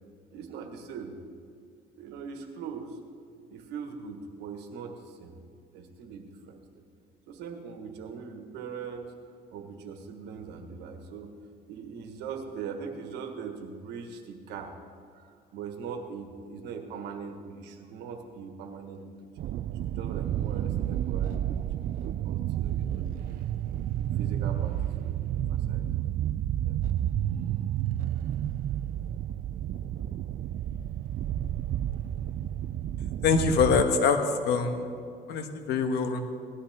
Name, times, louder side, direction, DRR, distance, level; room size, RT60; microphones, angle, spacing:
voice 1, 0.3-1.1 1.9-3.0 3.5-5.3 5.7-6.6 7.3-9.2 9.5-11.3 11.7-14.7 15.1-19.0 19.8-21.6 22.2-23.5 24.1-26.0 26.6-26.8, right 6 dB, 90° right, 5 dB, 1.6 m, -41 dB
sound 1, 19.4-33.8, right 11 dB, 55° right, 0.4 m, -31 dB
voice 2, 33.2-34.8 35.3-36.2, left 5 dB, 80° left, 6 dB, 1.4 m, -24 dB
18.5 x 13.0 x 3.7 m, 2.3 s
cardioid pair, 110°, 17 cm